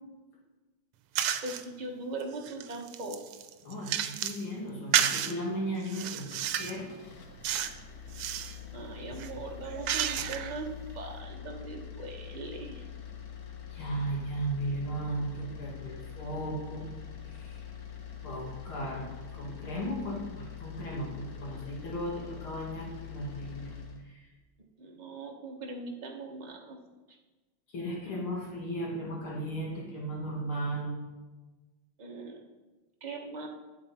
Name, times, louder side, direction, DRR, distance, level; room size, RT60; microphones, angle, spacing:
sound 1, 1.2-1.7 2.2-4.4 4.9-5.3 5.9-6.8 7.4-7.8 8.1-8.6 9.1-10.6, right 10 dB, 80° right, 1.5 m, -31 dB
voice 1, 1.4-3.2 8.7-12.9 24.8-26.8 27.1-27.2 32.0-32.5 33.0-33.5, right 3 dB, 25° right, 1 dB, 1.0 m, -40 dB
voice 2, 3.6-6.9 13.7-16.9 17.3-17.7 18.2-19.1 19.3-23.7 24.0-24.3 27.7-30.9, right 1 dB, 70° left, -3 dB, 2.9 m, -36 dB
sound 2, 6.1-24.0, left 9 dB, 50° left, 1.5 m, -44 dB
12.0 x 8.4 x 4.3 m, 1.2 s
omnidirectional pair, 2.4 m